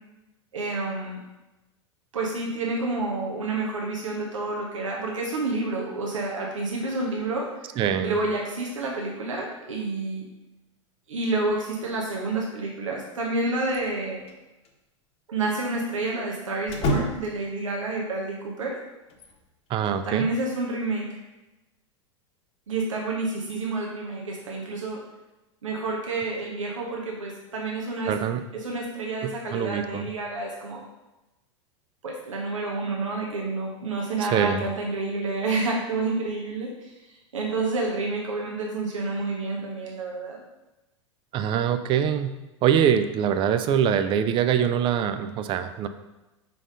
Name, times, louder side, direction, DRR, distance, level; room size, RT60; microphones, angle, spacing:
voice 1, 0.5-1.2 2.1-7.5 8.0-10.2 11.1-14.2 15.3-18.8 20.1-21.2 22.7-25.0 25.6-28.1 28.6-30.8 32.0-36.9 37.3-40.4, right 3 dB, 80° right, -1 dB, 1.0 m, -29 dB
voice 2, 7.8-8.2 19.7-20.3 28.1-28.4 29.2-30.1 34.2-34.6 41.3-42.4 42.6-45.9, right 8 dB, 30° right, 9 dB, 0.4 m, -24 dB
sound 1, 13.7-14.4 14.6-14.7 16.7-17.5 19.1-20.0, equal, 40° left, 1.1 m, -30 dB
5.0 x 3.8 x 5.1 m, 1.0 s
figure-of-eight pair, 90°, 16 cm